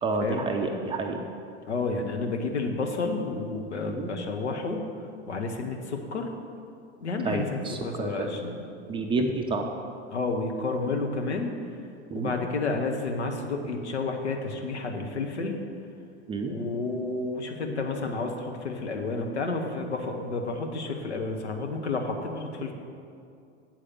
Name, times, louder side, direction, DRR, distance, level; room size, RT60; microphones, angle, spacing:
voice 1, 0.0-1.2 3.9-4.1 7.2-8.3 8.9-9.7 12.1-12.3 16.3-16.5, right 3 dB, 15° right, 3 dB, 0.5 m, -29 dB
voice 2, 1.7-4.8 5.3-6.3 7.0-8.6 10.1-11.5 12.1-15.6 16.5-22.7, left 3 dB, 75° left, 3 dB, 1.0 m, -30 dB
7.4 x 4.8 x 7.1 m, 2.5 s
figure-of-eight pair, 85°, 34 cm